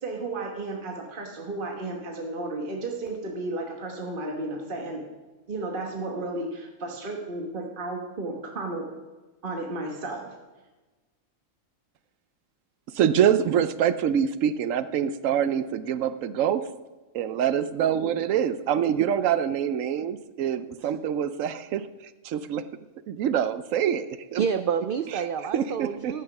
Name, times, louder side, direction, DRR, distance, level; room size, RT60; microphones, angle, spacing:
voice 1, 0.0-5.1 5.5-8.9 9.4-10.3, right 2 dB, 45° right, 1 dB, 1.4 m, -33 dB
voice 2, 12.9-16.7 17.1-21.9 22.2-22.6 23.1-24.4 25.5-26.1, right 9 dB, 80° right, 13 dB, 1.0 m, -25 dB
voice 3, 24.4-26.2, right 7 dB, 65° right, 10 dB, 0.5 m, -28 dB
14.0 x 6.4 x 5.9 m, 1.2 s
omnidirectional pair, 1.3 m